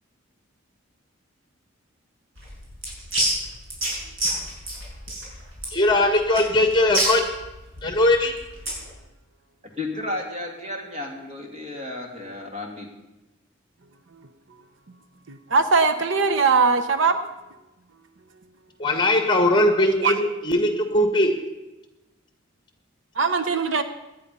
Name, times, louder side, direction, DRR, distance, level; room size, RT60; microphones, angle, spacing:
sound 1, 2.4-8.9, right 1 dB, 85° right, 6.4 m, -29 dB
voice 1, 5.7-7.2 7.8-8.3 18.8-21.4, left 1 dB, 20° left, 5 dB, 1.7 m, -20 dB
voice 2, 9.8-12.9, left 2 dB, 30° right, 1 dB, 2.7 m, -33 dB
voice 3, 15.3-17.2 20.0-20.2 23.2-23.8, right 4 dB, 70° right, 10 dB, 0.8 m, -20 dB
18.0 x 10.5 x 5.5 m, 1.0 s
head